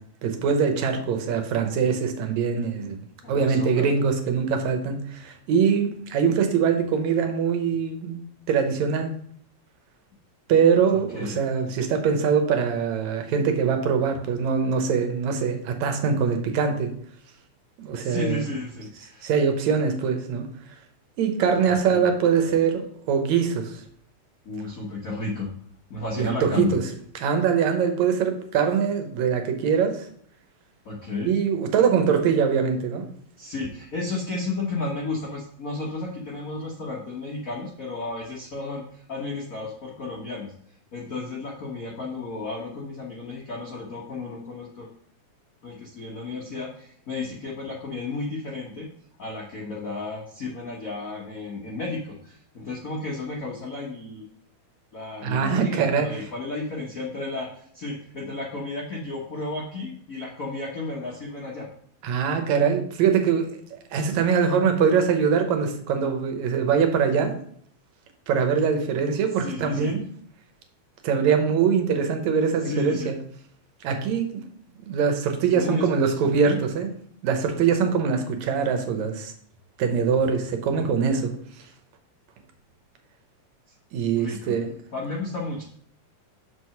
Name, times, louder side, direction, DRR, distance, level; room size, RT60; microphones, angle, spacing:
voice 1, 0.2-3.0 3.3-8.2 8.5-9.1 10.5-16.9 17.8-18.4 19.2-20.5 21.2-23.8 26.2-26.8 27.2-30.1 31.2-33.1 55.2-56.1 62.0-67.3 68.3-70.0 71.0-73.2 73.8-74.4 74.9-76.9 77.2-79.3 79.8-81.3 83.9-84.7, right 6 dB, 75° right, 5 dB, 2.2 m, -23 dB
voice 2, 3.2-3.9 10.9-11.4 18.0-19.3 21.6-22.0 24.4-25.5 25.9-26.7 30.8-31.3 33.4-40.5 40.9-44.9 45.6-48.9 49.2-54.2 54.9-61.7 69.4-69.9 72.6-73.1 75.4-76.6 80.7-80.9 84.1-84.5 84.9-85.6, left 3 dB, 85° left, -3 dB, 0.7 m, -33 dB
6.0 x 4.8 x 5.7 m, 0.62 s
omnidirectional pair, 3.4 m